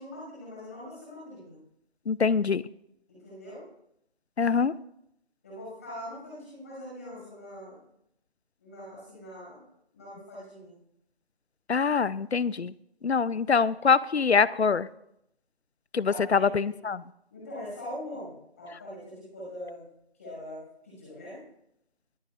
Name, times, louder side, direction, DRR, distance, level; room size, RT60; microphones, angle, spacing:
voice 1, 0.0-1.6 3.1-3.6 5.4-7.8 8.6-9.6 9.9-10.7 16.1-16.7 17.3-19.8 20.2-21.4, left 1 dB, 15° left, -7 dB, 5.8 m, -42 dB
voice 2, 2.1-2.6 4.4-4.7 11.7-12.7 13.0-14.9 15.9-17.0, left 5 dB, 75° left, 20 dB, 0.6 m, -24 dB
24.5 x 10.0 x 2.4 m, 0.76 s
figure-of-eight pair, 170°, 33 cm